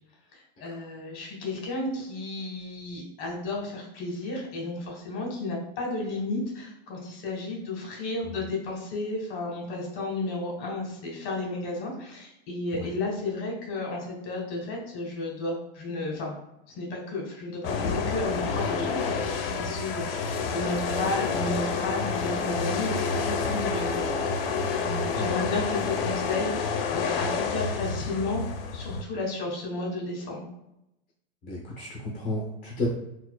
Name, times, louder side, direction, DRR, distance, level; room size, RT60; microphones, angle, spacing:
voice 1, 0.6-16.4 16.8-28.4 28.7-30.5, left 2 dB, 45° left, -1 dB, 1.4 m, -33 dB
sound 1, 17.6-29.0, left 5 dB, 65° left, 0.6 m, -29 dB
voice 2, 31.4-32.9, left 2 dB, 25° left, -5 dB, 0.8 m, -33 dB
4.1 x 2.3 x 2.3 m, 0.85 s
supercardioid pair, 140°, 30 cm